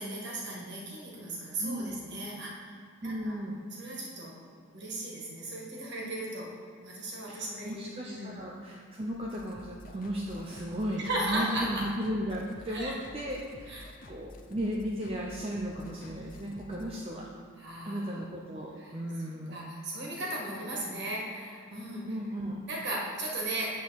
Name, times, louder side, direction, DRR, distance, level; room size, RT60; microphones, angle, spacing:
voice 1, 0.0-2.8 3.0-3.4 3.8-4.3 4.7-6.5 6.8-8.4 11.0-11.9 12.7-13.0 13.7-13.9 17.6-18.1 18.8-19.0 19.5-22.2 22.7-23.8, right 1 dB, 50° right, -3 dB, 1.9 m, -36 dB
voice 2, 1.6-2.0 3.0-3.6 7.3-17.3 17.8-19.6 22.0-22.6, equal, 25° right, -3 dB, 0.6 m, -35 dB
sound 1, 9.2-16.9, left 1 dB, 40° left, 0.6 m, -50 dB
8.9 x 3.9 x 7.0 m, 2.1 s
head